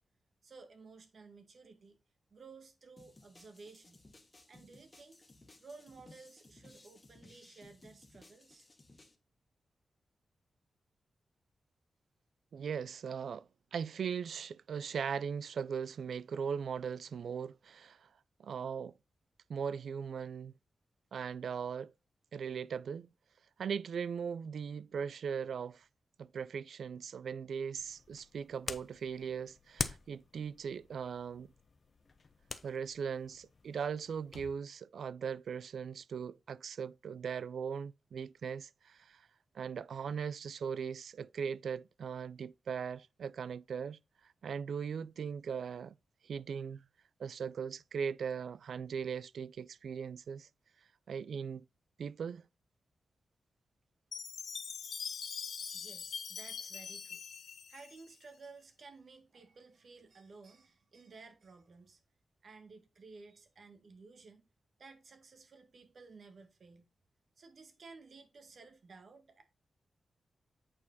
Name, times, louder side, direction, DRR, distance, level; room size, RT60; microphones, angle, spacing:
voice 1, 0.4-2.0 2.3-4.0 4.5-5.2 5.6-8.7 55.7-57.2 57.7-62.0 62.4-64.4 64.8-66.9 67.4-69.4, right 4 dB, 60° right, 1.8 m, -55 dB
sound 1, 3.0-9.2, left 2 dB, 25° left, 1.6 m, -60 dB
voice 2, 12.5-18.1 18.4-19.0 19.5-20.5 21.1-21.9 22.3-23.1 23.6-25.9 26.2-31.5 32.6-39.3 39.5-44.0 44.4-46.0 46.2-46.9 47.2-50.5 51.1-51.6 52.0-52.5, right 6 dB, 80° right, 0.3 m, -39 dB
sound 2, 27.8-34.5, left 4 dB, 45° left, 0.8 m, -45 dB
Chime, 54.1-58.5, left 6 dB, 75° left, 0.8 m, -43 dB
8.6 x 4.8 x 4.0 m
wide cardioid pair, 100°, 0 cm